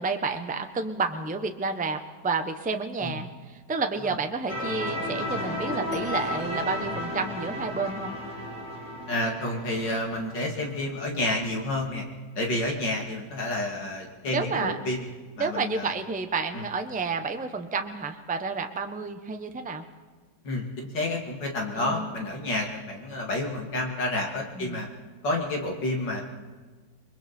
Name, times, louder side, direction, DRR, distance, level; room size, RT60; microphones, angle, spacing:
voice 1, 0.0-8.2 14.3-14.8 15.4-19.8 21.8-22.1 24.6-24.8, right 4 dB, 10° right, 6 dB, 0.5 m, -30 dB
sound 1, 4.5-11.2, left 1 dB, 40° left, 3.5 m, -33 dB
voice 2, 9.1-12.0 12.4-15.1 15.4-15.9 16.5-16.7 20.4-24.9 25.2-26.2, left 1 dB, 70° left, 1 dB, 3.2 m, -30 dB
28.0 x 21.5 x 4.4 m, 1.4 s
omnidirectional pair, 2.0 m